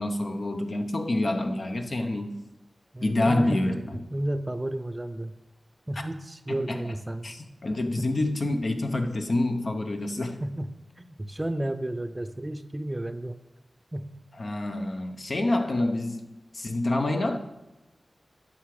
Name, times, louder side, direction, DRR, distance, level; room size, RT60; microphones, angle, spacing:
voice 1, 0.0-2.3 3.0-4.0 6.5-6.9 7.2-10.4 14.4-16.3 16.5-17.4, left 2 dB, 60° left, 0.9 m, -27 dB
voice 2, 2.9-3.6 4.1-5.3 5.9-7.3 7.9-8.1 10.4-13.4 13.9-14.1, right 1 dB, 25° right, 0.6 m, -32 dB
9.6 x 5.9 x 4.9 m
cardioid pair, 50°, 0 cm